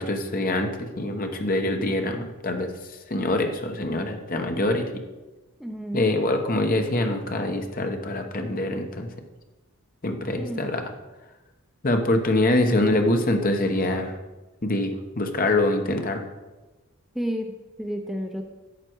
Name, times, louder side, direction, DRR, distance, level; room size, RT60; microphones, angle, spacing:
voice 1, 0.0-2.7 3.1-4.9 5.9-9.1 10.0-10.9 11.8-14.2 14.6-16.2, left 1 dB, 40° left, 5 dB, 1.0 m, -24 dB
voice 2, 5.6-6.1 10.4-10.7 17.1-17.5 17.8-18.4, equal, ahead, 3 dB, 0.5 m, -31 dB
11.0 x 7.6 x 4.6 m, 1.1 s
head